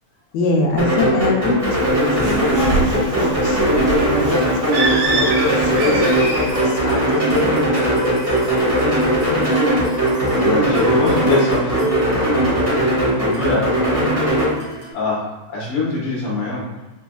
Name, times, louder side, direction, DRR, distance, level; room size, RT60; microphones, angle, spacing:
voice 1, 0.3-7.0 7.3-8.1, left 3 dB, 80° left, 0 dB, 2.0 m, -25 dB
sound 1, 0.8-14.5, right 1 dB, 30° right, 1.0 m, -19 dB
Bird, 1.6-6.6, right 3 dB, 75° right, 2.2 m, -26 dB
voice 2, 4.3-4.7 10.3-11.9 13.2-13.7 14.9-15.2 15.5-16.7, left 3 dB, 60° left, -6 dB, 1.9 m, -23 dB
sound 2, 5.4-14.9, right 1 dB, 60° right, 1.1 m, -31 dB
5.4 x 2.4 x 2.3 m, 1.1 s
omnidirectional pair, 3.3 m